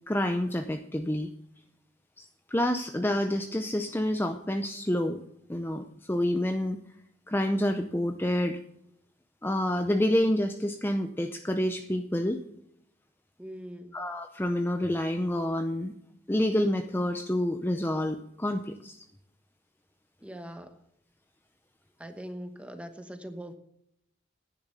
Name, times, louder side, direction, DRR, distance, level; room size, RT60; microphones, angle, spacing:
voice 1, 0.1-1.3 2.2-5.2 5.5-6.8 7.3-8.6 9.4-12.4 13.9-15.9 16.3-19.0, left 1 dB, 10° left, 6 dB, 0.6 m, -28 dB
voice 2, 13.4-13.9 20.2-20.7 22.0-23.5, equal, 5° right, 8 dB, 1.1 m, -41 dB
10.5 x 10.0 x 6.8 m, 0.76 s
head